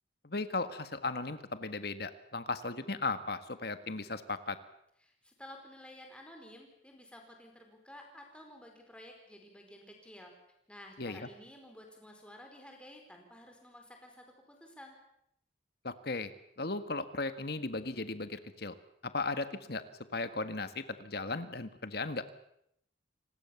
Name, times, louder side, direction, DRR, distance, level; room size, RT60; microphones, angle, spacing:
voice 1, 0.2-4.6 11.0-11.3 15.8-16.3 16.6-18.7 19.0-19.8 20.1-22.2, left 3 dB, 55° left, 11 dB, 1.6 m, -36 dB
voice 2, 5.0-10.3 10.7-15.0, left 1 dB, 5° left, 2 dB, 4.6 m, -52 dB
29.0 x 20.0 x 7.1 m, 0.74 s
head